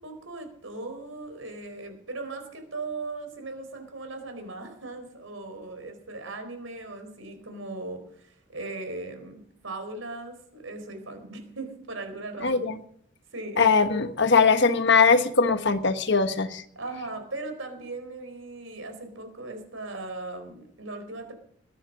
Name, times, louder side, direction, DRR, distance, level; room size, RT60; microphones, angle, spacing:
voice 1, 0.0-12.8 13.3-13.7 16.7-21.3, right 2 dB, 70° right, 6 dB, 4.4 m, -38 dB
voice 2, 12.4-12.7 13.6-16.6, left 4 dB, 55° left, 9 dB, 1.3 m, -21 dB
20.5 x 10.0 x 6.3 m, 0.65 s
head